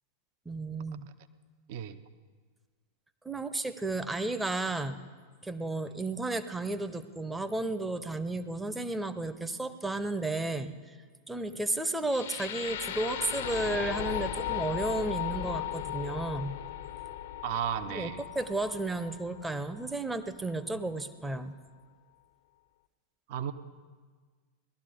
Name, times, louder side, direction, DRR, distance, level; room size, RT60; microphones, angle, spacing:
voice 1, 0.5-1.1 3.2-5.0 5.4-10.9 11.3-16.6 17.9-21.6, right 2 dB, 10° right, 10 dB, 0.7 m, -33 dB
voice 2, 1.7-2.0 17.4-18.2 23.3-23.5, right 9 dB, 50° right, 11 dB, 0.7 m, -34 dB
sound 1, 12.1-20.1, left 11 dB, 55° left, 0.7 m, -37 dB
17.5 x 12.5 x 5.1 m, 1.5 s
figure-of-eight pair, 90°, 0 cm